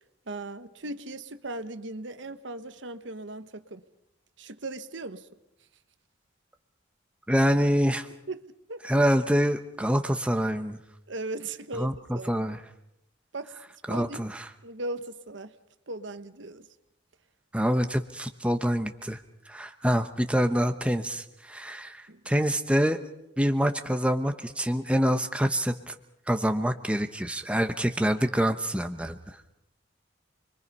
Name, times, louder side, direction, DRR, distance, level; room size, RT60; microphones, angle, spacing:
voice 1, 0.3-3.8 4.4-5.3 8.3-8.8 11.1-12.3 13.3-13.5 13.9-14.3 14.6-15.5 15.9-16.7 22.1-22.2, right 2 dB, 75° right, 1.3 m, -38 dB
voice 2, 7.3-8.1 8.8-10.8 11.8-12.6 13.9-14.5 17.5-19.2 19.5-23.0 23.4-25.9 26.3-29.2, equal, 5° right, 0.9 m, -26 dB
28.0 x 22.5 x 5.5 m
head